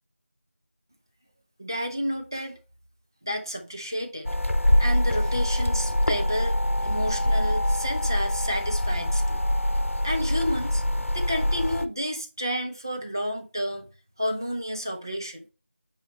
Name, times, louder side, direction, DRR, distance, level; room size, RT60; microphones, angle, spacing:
voice 1, 1.6-2.6 3.2-4.3 4.8-9.4 10.0-13.9 14.2-15.5, equal, 15° right, 0.6 m, -31 dB
sound 1, 4.3-11.9, left 1 dB, 75° left, 0.9 m, -24 dB
9.3 x 4.7 x 3.1 m
figure-of-eight pair, 175°, 7 cm